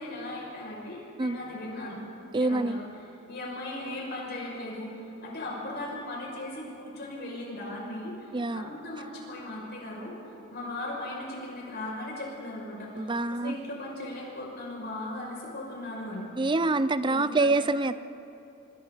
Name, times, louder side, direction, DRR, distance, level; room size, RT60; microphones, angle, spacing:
voice 1, 0.0-2.0 2.4-2.9 3.3-4.9 5.2-10.2 10.5-16.3 17.0-17.5, left 1 dB, 55° left, -3 dB, 6.3 m, -38 dB
voice 2, 2.3-2.8 8.3-8.7 13.0-13.6 16.4-17.9, right 2 dB, 25° right, 13 dB, 0.5 m, -26 dB
26.5 x 25.5 x 4.1 m, 2.9 s
head